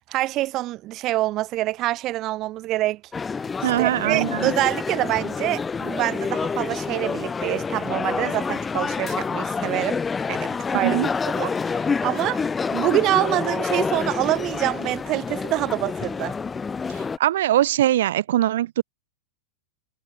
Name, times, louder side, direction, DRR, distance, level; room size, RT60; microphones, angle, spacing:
voice 1, 0.1-3.0 3.6-10.0 10.3-11.0 11.3-12.4 12.7-16.4, right 16 dB, 40° right, 1.0 m, -26 dB
Cards at Student Canteen (surround ambience), 3.1-17.2, left 5 dB, 15° left, 0.4 m, -28 dB
voice 2, 3.6-4.5 10.8-11.1 16.9-18.8, right 13 dB, 75° right, 0.7 m, -22 dB
hypercardioid pair, 130°, 0 cm